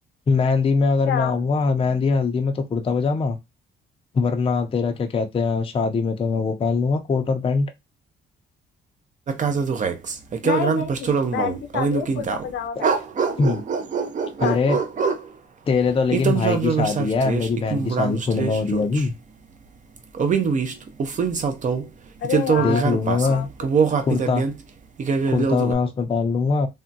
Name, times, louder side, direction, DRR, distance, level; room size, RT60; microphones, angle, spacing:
voice 1, 0.3-3.4 4.1-7.7 13.4-13.6 14.4-14.8 15.7-19.1 22.6-23.5 24.0-24.5 25.3-26.7, left 4 dB, 25° left, 0.5 m, -22 dB
sound 1, 9.3-12.5 12.8-15.3 16.1-19.1 20.0-21.9 22.2-24.6 25.0-25.7, right 5 dB, 40° right, 0.5 m, -24 dB
voice 2, 10.4-12.9 14.4-14.8 22.2-22.9 23.2-24.0, left 8 dB, 70° left, 0.7 m, -29 dB
3.5 x 2.1 x 2.6 m
cardioid pair, 90°, 20 cm